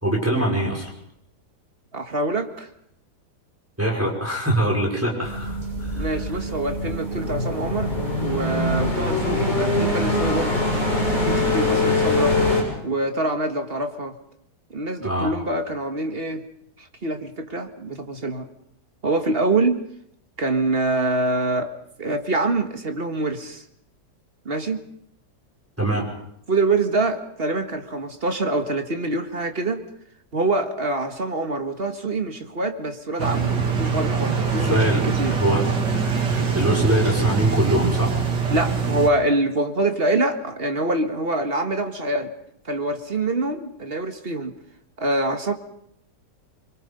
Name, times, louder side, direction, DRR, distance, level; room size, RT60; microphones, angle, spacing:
voice 1, 0.0-0.9 3.8-6.1 15.0-15.3 25.8-26.0 34.6-35.0 35.3-35.6 36.3-38.1, right 1 dB, 10° right, -1 dB, 5.5 m, -23 dB
voice 2, 1.9-2.7 5.9-10.6 11.1-12.4 12.8-14.2 14.7-16.4 16.8-18.5 19.0-19.8 20.4-21.7 22.0-23.6 24.5-24.8 26.5-29.9 30.3-35.4 38.5-42.3 42.7-44.5 45.0-45.5, right 2 dB, 35° right, 6 dB, 1.7 m, -25 dB
sound 1, 5.2-12.6, left 2 dB, 25° left, 7.1 m, -23 dB
sound 2, 33.2-39.1, right 5 dB, 80° right, 3.0 m, -23 dB
25.5 x 23.5 x 5.3 m, 0.73 s
omnidirectional pair, 1.8 m